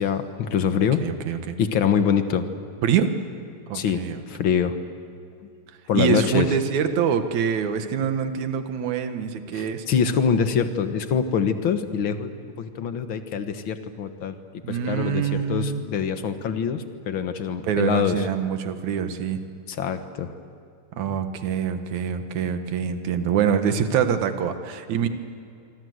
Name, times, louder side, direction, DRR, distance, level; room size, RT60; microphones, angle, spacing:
voice 1, 0.0-1.1 1.6-2.4 3.7-4.8 5.9-6.5 9.5-12.3 12.6-14.4 14.7-18.2 19.7-20.3, left 7 dB, 55° left, 8 dB, 1.5 m, -24 dB
voice 2, 1.0-1.6 2.8-3.1 3.7-4.2 5.9-9.9 14.6-15.8 17.6-19.4 21.0-25.1, right 7 dB, 65° right, 8 dB, 2.7 m, -25 dB
25.5 x 25.5 x 8.0 m, 2.5 s
omnidirectional pair, 3.8 m